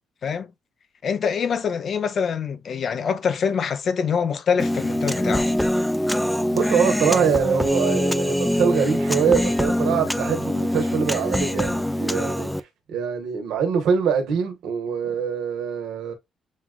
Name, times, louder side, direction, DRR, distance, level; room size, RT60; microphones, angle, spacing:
voice 1, 1.0-5.5, left 6 dB, 55° left, 0.6 m, -25 dB
Human voice, 4.6-12.6, left 1 dB, 5° left, 0.5 m, -23 dB
voice 2, 6.5-12.5 12.9-16.1, right 6 dB, 85° right, 1.2 m, -24 dB
7.2 x 2.5 x 2.2 m
cardioid pair, 90°, 0 cm